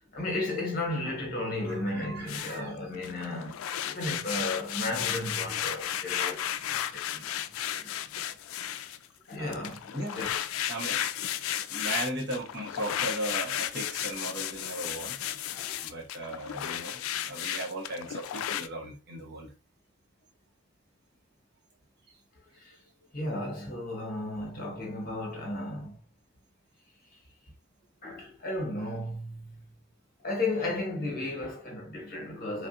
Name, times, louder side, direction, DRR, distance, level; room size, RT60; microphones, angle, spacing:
voice 1, 0.1-7.3 7.7-8.3 9.3-9.8 10.1-10.3 15.5-15.9 22.6-22.7 23.1-26.0 28.0-29.6 30.2-32.7, left 2 dB, 45° left, 1.1 m, -34 dB
voice 2, 1.6-2.8 9.4-10.2 10.7-11.0 11.7-15.2 15.8-19.5, right 1 dB, 55° right, 0.9 m, -37 dB
sound 1, 2.3-2.6 2.9-9.0 9.5-18.7, left 11 dB, 90° left, 0.3 m, -34 dB
3.3 x 2.4 x 2.6 m
head